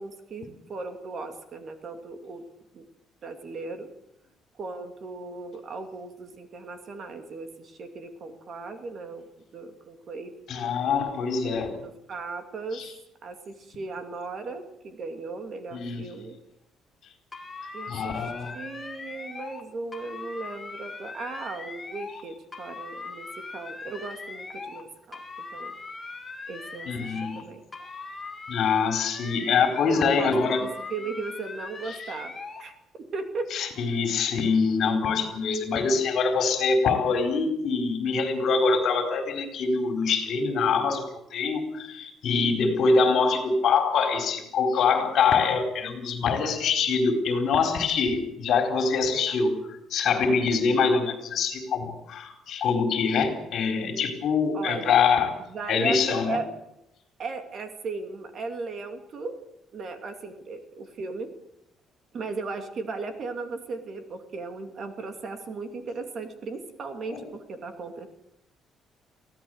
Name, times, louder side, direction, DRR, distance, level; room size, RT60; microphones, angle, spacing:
voice 1, 0.0-2.4 2.7-2.8 3.2-3.9 4.6-9.2 9.5-10.3 11.4-12.8 13.2-16.4 17.7-25.2 25.5-25.7 26.5-27.6 29.9-32.3 32.6-33.5 54.5-55.1 55.4-56.5 57.2-59.4 59.7-61.3 62.1-68.1, right 3 dB, 40° right, 7 dB, 2.5 m, -37 dB
voice 2, 10.5-11.7 12.7-12.9 15.7-16.1 17.9-18.6 26.9-27.4 28.5-30.6 33.5-41.1 41.3-49.6 49.9-55.3 55.7-56.4 67.1-67.2, left 5 dB, 50° left, 5 dB, 4.4 m, -24 dB
sound 1, 17.3-19.6 19.9-22.2 22.5-24.8 25.1-27.4 27.7-30.0 30.3-32.6, left 3 dB, 15° left, 2.1 m, -40 dB
23.5 x 16.5 x 8.0 m, 0.81 s
cardioid pair, 170°, 0 cm